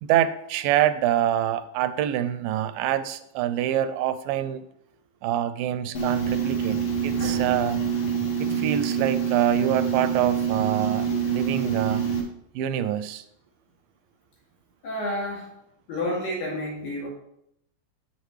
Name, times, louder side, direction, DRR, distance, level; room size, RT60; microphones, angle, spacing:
voice 1, 0.0-4.6 5.2-7.8 8.4-12.0 12.6-13.2, right 11 dB, 85° right, 13 dB, 2.2 m, -26 dB
sound 1, 5.9-12.2, right 7 dB, 55° left, 1.7 m, -26 dB
voice 2, 14.8-15.5 15.9-17.1, left 1 dB, 80° left, -3 dB, 4.0 m, -30 dB
8.4 x 8.4 x 3.2 m, 0.76 s
omnidirectional pair, 4.0 m